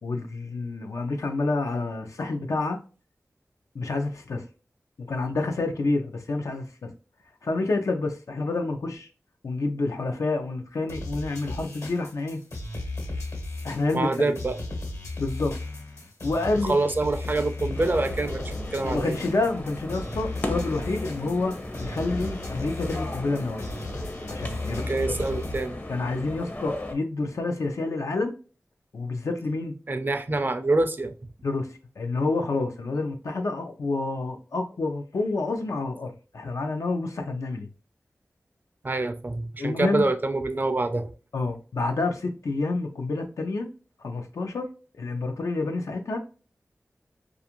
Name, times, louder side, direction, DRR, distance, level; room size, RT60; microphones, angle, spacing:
voice 1, 0.0-2.8 3.7-4.4 5.1-6.9 7.4-9.1 9.4-12.4 13.6-14.4 15.2-15.6 16.2-16.7 18.8-21.5 21.8-23.7 24.3-24.9 25.9-28.3 28.9-29.7 31.4-37.7 39.6-40.1 41.3-43.7 44.0-44.7 45.0-46.2, left 3 dB, 85° left, 0.6 m, -28 dB
sound 1, 10.9-25.7, left 2 dB, 70° left, 1.2 m, -35 dB
voice 2, 13.9-14.6 16.6-19.2 24.7-25.8 29.9-31.1 38.8-41.1, right 2 dB, 40° right, 0.4 m, -26 dB
sound 2, 17.7-26.9, left 1 dB, 35° left, 0.6 m, -36 dB
2.4 x 2.4 x 2.9 m
wide cardioid pair, 75°, 5 cm